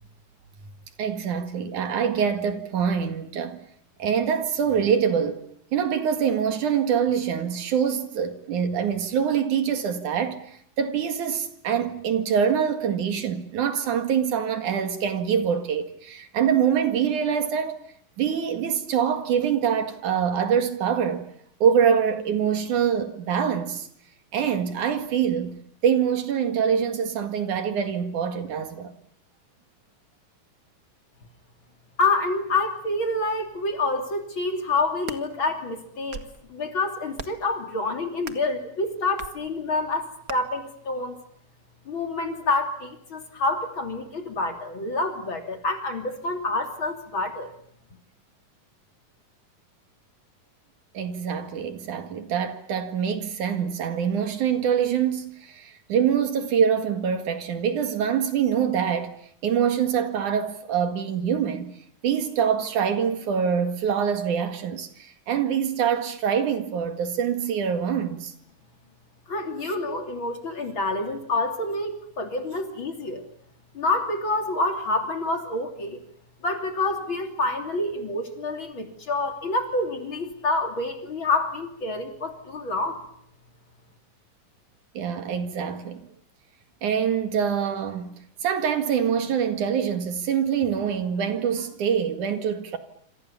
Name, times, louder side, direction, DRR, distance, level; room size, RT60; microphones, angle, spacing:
voice 1, 1.0-3.6 4.0-5.4 5.7-17.8 18.2-21.3 21.6-23.9 24.3-25.5 25.8-28.9 51.0-59.1 59.4-61.7 62.0-68.3 85.0-86.1 86.8-88.1 88.4-92.8, right 7 dB, 70° right, 3.3 m, -25 dB
voice 2, 32.0-41.2 41.9-47.5 69.3-73.2 73.7-76.0 76.4-83.0, left 2 dB, 40° left, 3.5 m, -27 dB
sound 1, 34.8-35.2 35.9-36.4 37.1-37.5 38.2-38.5 39.2-39.4 40.3-40.4, right 5 dB, 45° right, 1.2 m, -38 dB
27.5 x 27.0 x 7.1 m
omnidirectional pair, 3.7 m